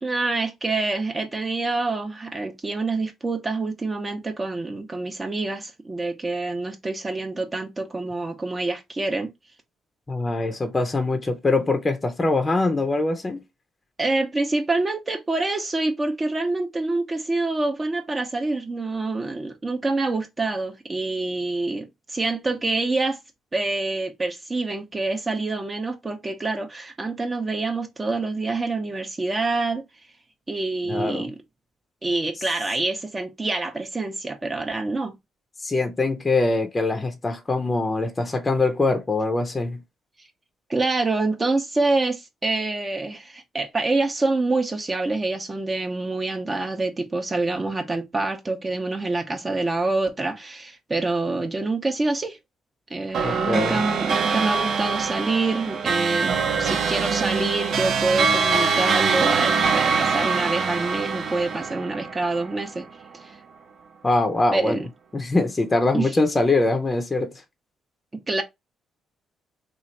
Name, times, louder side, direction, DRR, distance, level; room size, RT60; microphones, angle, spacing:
voice 1, 0.0-9.3 14.0-23.2 23.5-29.8 30.5-31.4 32.0-35.1 40.7-52.4 52.9-56.3 56.6-62.8 63.1-63.4 64.5-64.9 65.9-66.1 68.1-68.4, right 3 dB, 25° right, 0.6 m, -26 dB
voice 2, 10.1-13.4 30.9-31.3 35.6-39.8 53.2-53.8 64.0-64.8 65.1-67.3, left 2 dB, 25° left, 0.6 m, -23 dB
sound 1, 53.1-62.8, right 5 dB, 65° right, 0.7 m, -23 dB
3.1 x 2.4 x 4.1 m
cardioid pair, 90°, 0 cm